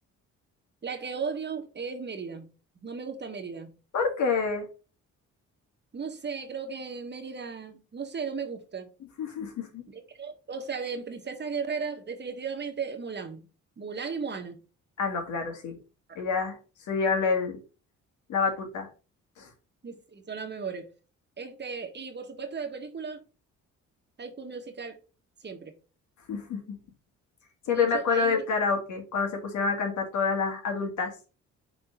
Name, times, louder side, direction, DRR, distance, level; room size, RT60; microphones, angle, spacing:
voice 1, 0.8-2.5 2.8-3.7 5.9-8.9 9.9-13.4 13.8-14.6 19.8-20.9 21.4-23.2 24.2-25.0 25.4-25.7 27.7-28.4, right 5 dB, 35° right, 1.4 m, -36 dB
voice 2, 3.9-4.7 9.2-9.8 15.0-15.8 16.2-16.6 16.9-17.6 18.3-18.9 19.4-19.5 26.3-26.8 27.7-31.1, left 5 dB, 75° left, 2.3 m, -27 dB
5.8 x 3.7 x 5.2 m
cardioid pair, 90°, 30 cm